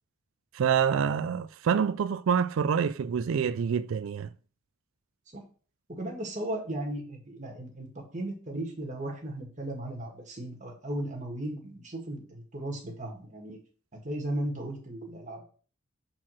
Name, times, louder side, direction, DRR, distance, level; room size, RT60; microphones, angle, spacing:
voice 1, 0.5-4.3, right 7 dB, 70° right, 0.3 m, -26 dB
voice 2, 5.9-13.6 13.9-15.4, right 1 dB, 35° right, 1.7 m, -36 dB
5.8 x 4.2 x 6.2 m
head